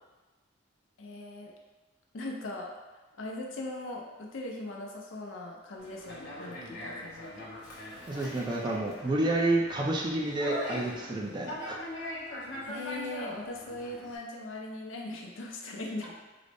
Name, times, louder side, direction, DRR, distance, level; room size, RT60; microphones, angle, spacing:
voice 1, 1.0-1.5 2.1-2.7 3.2-7.5 12.6-16.1, left 2 dB, 80° left, -1 dB, 0.6 m, -40 dB
Conversation, 5.8-14.2, left 1 dB, 60° left, 1.0 m, -41 dB
voice 2, 8.1-11.8, right 2 dB, 20° right, -2 dB, 0.4 m, -29 dB
3.8 x 2.0 x 3.4 m, 1.2 s
head